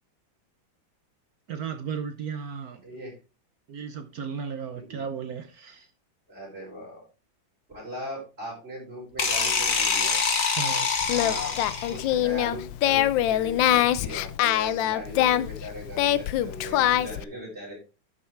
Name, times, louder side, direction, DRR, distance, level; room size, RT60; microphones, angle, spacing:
voice 1, 1.5-2.8 3.7-5.9 10.6-10.9, right 6 dB, 60° right, 1.1 m, -35 dB
voice 2, 2.8-3.2 4.7-5.0 6.3-7.0 7.7-10.2 11.1-11.5 11.9-17.8, left 1 dB, 30° right, 6.3 m, -39 dB
sound 1, 9.2-12.1, left 5 dB, 45° left, 1.7 m, -25 dB
Singing, 11.0-17.2, left 12 dB, 75° left, 1.3 m, -24 dB
11.0 x 6.3 x 3.5 m
omnidirectional pair, 2.2 m